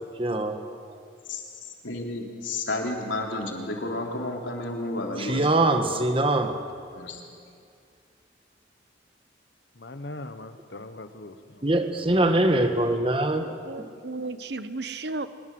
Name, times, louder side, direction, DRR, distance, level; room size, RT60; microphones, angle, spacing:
voice 1, 0.2-0.6 5.2-6.5 11.6-13.6, right 2 dB, 30° right, 6 dB, 1.5 m, -23 dB
voice 2, 1.3-6.1 6.9-7.2, left 2 dB, 85° left, 1 dB, 3.5 m, -32 dB
voice 3, 9.8-12.1, left 2 dB, 65° left, 10 dB, 1.3 m, -41 dB
voice 4, 13.1-15.3, right 3 dB, 60° right, 12 dB, 1.0 m, -35 dB
23.5 x 21.5 x 7.9 m, 2.3 s
head